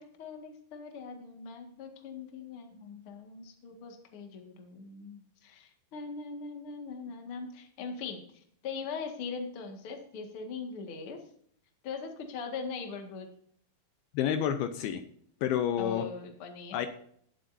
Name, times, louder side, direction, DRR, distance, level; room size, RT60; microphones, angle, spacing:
voice 1, 0.0-11.2 11.8-13.3 15.8-16.9, left 5 dB, 45° left, 4 dB, 2.0 m, -41 dB
voice 2, 14.1-15.0 15.4-16.1 16.7-16.9, left 9 dB, 80° left, 8 dB, 2.6 m, -29 dB
19.0 x 7.5 x 2.7 m, 0.64 s
omnidirectional pair, 4.5 m